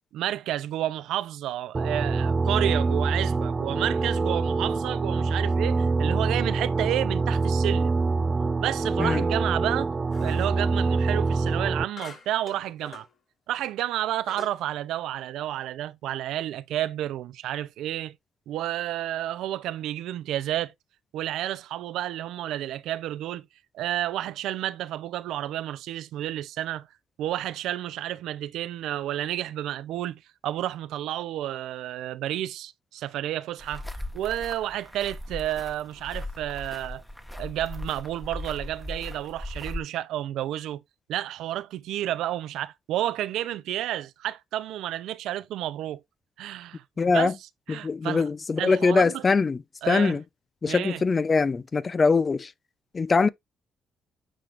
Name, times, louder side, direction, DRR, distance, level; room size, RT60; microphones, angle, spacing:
voice 1, 0.1-8.0 8.6-9.9 10.2-13.1 13.5-18.1 18.5-20.7 21.1-23.5 23.7-26.9 27.2-33.9 34.1-37.0 37.3-40.8 41.1-46.0 46.4-46.8 47.1-47.3 47.7-48.3 48.6-49.2 49.8-50.2 50.7-51.0, right 13 dB, 85° right, 0.6 m, -31 dB
sound 1, 1.7-11.8, right 3 dB, 25° right, 0.4 m, -25 dB
sound 2, 10.1-10.6 12.0-13.1 13.7-13.8 14.3-14.6, left 4 dB, 50° left, 2.7 m, -45 dB
sound 3, 33.6-39.8, left 1 dB, 5° left, 1.3 m, -38 dB
voice 2, 47.0-47.3 47.7-50.2 50.6-52.5 52.9-53.3, left 4 dB, 35° left, 0.6 m, -23 dB
8.7 x 5.1 x 2.5 m
cardioid pair, 90°, 0 cm